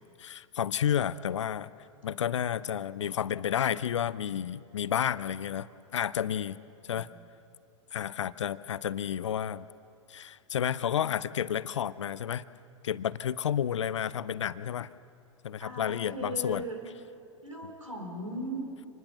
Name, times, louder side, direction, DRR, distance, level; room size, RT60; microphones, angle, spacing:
voice 1, 0.2-1.7 2.0-5.7 5.9-6.6 6.9-7.1 7.9-9.7 10.1-12.4 12.8-14.9 15.4-16.6, left 9 dB, 65° left, 17 dB, 0.6 m, -31 dB
voice 2, 15.6-16.8 17.4-18.6, right 1 dB, 90° right, 2 dB, 3.9 m, -38 dB
26.5 x 20.0 x 6.0 m, 2.5 s
figure-of-eight pair, 100°, 16 cm